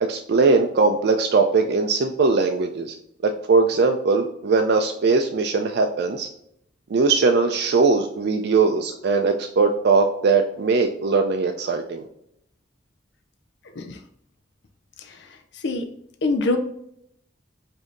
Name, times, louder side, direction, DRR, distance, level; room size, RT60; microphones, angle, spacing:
voice 1, 0.0-2.9 3.2-6.3 6.9-12.1, right 4 dB, 60° right, 5 dB, 0.4 m, -20 dB
voice 2, 16.2-16.6, left 2 dB, 65° left, 5 dB, 0.5 m, -23 dB
5.0 x 2.7 x 3.7 m, 0.73 s
head